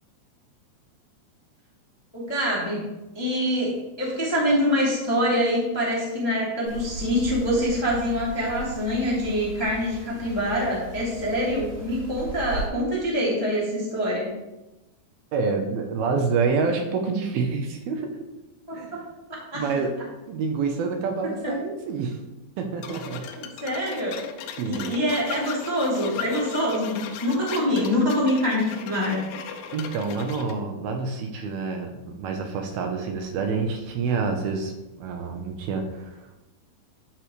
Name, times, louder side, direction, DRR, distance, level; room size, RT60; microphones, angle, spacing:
voice 1, 2.1-2.9 3.1-14.3 18.7-19.6 21.4-21.5 23.3-24.2 24.6-29.2, equal, 10° left, -5 dB, 1.3 m, -25 dB
sound 1, 6.7-12.7, right 1 dB, 50° right, 4.2 m, -37 dB
voice 2, 15.3-18.1 18.7-19.0 19.5-19.9 20.3-22.2 22.6-23.3 24.6-24.9 29.7-34.7 35.0-36.4, right 4 dB, 75° right, 4 dB, 2.6 m, -27 dB
sound 2, 22.8-30.6, left 7 dB, 85° left, 2.7 m, -38 dB
12.0 x 6.7 x 3.2 m, 0.98 s
omnidirectional pair, 4.7 m